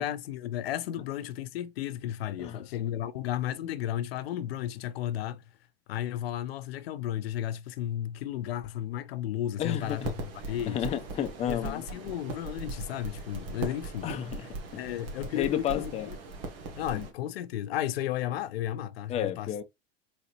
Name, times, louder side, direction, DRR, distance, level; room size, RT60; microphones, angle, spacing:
voice 1, 0.0-5.4 5.9-10.9 11.5-14.1 14.7-16.2 16.8-19.5, left 12 dB, 80° left, 0.6 m, -34 dB
voice 2, 9.6-10.0 10.7-11.8 14.0-14.5 15.3-16.1 16.9-17.0 19.1-19.6, left 10 dB, 20° left, 0.5 m, -31 dB
sound 1, 9.8-17.1, right 3 dB, 70° right, 1.9 m, -39 dB
4.1 x 4.0 x 2.6 m
supercardioid pair, 125°, 30 cm